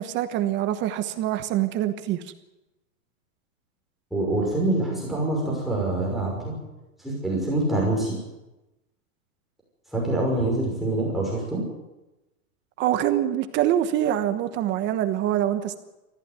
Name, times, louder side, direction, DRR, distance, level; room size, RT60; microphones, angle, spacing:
voice 1, 0.0-2.2 12.8-15.8, right 12 dB, 25° right, 9 dB, 1.2 m, -25 dB
voice 2, 4.1-6.5 7.0-8.2 9.9-11.6, right 2 dB, ahead, -3 dB, 5.8 m, -25 dB
20.0 x 15.0 x 9.6 m, 1.0 s
supercardioid pair, 155°, 42 cm